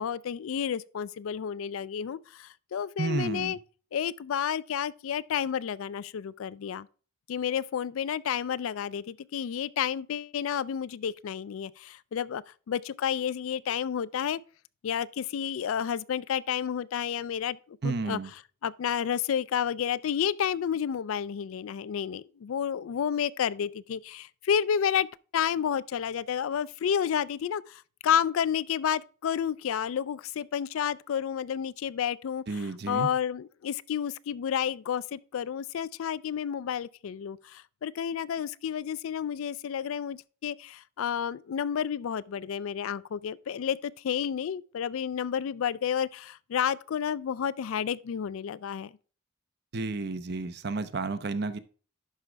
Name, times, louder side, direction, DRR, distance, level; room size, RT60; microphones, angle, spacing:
voice 1, 0.0-3.6 3.9-6.9 7.3-14.4 14.8-17.6 17.8-18.2 18.6-25.1 25.3-32.4 32.9-48.9, left 8 dB, 80° left, 0.4 m, -30 dB
voice 2, 3.0-3.6 17.8-18.3 32.5-33.1 49.7-51.6, right 3 dB, 50° right, 0.7 m, -31 dB
11.0 x 5.0 x 3.4 m
head